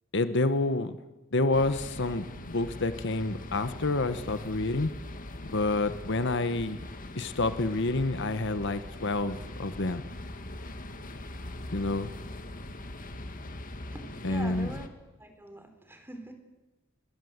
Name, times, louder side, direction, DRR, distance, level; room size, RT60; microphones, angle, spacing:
voice 1, 0.1-1.0 1.3-4.9 5.4-6.8 7.1-10.0 11.7-12.1 14.2-14.8, left 2 dB, 60° left, 11 dB, 1.2 m, -28 dB
sound 1, 1.5-14.9, left 1 dB, 40° left, 2.0 m, -42 dB
voice 2, 13.9-14.9 15.2-16.3, right 1 dB, 10° right, 7 dB, 3.9 m, -43 dB
29.0 x 22.5 x 8.1 m, 1.1 s
head